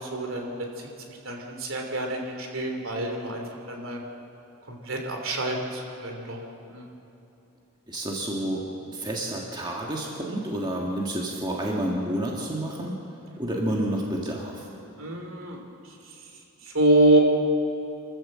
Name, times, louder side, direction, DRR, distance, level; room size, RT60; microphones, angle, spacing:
voice 1, 0.0-4.0 4.7-6.4 6.7-6.9 15.0-15.6 16.6-17.2, right 2 dB, 60° right, 2 dB, 3.0 m, -26 dB
voice 2, 7.9-13.0 13.4-14.7, right 1 dB, 20° right, -2 dB, 1.7 m, -29 dB
25.5 x 14.5 x 7.5 m, 2.9 s
head